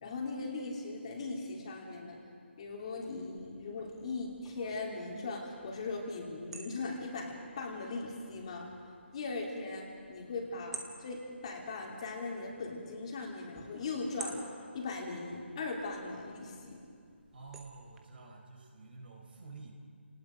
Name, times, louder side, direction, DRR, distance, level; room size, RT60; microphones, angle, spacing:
voice 1, 0.0-2.2 2.6-8.7 9.1-14.4 14.7-16.8, left 3 dB, 30° left, -1 dB, 2.8 m, -39 dB
sound 1, 3.4-18.0, right 4 dB, 5° right, 0.7 m, -53 dB
voice 2, 17.3-19.7, right 3 dB, 50° right, 2 dB, 4.3 m, -50 dB
29.0 x 19.0 x 5.1 m, 2.2 s
hypercardioid pair, 170°, 7 cm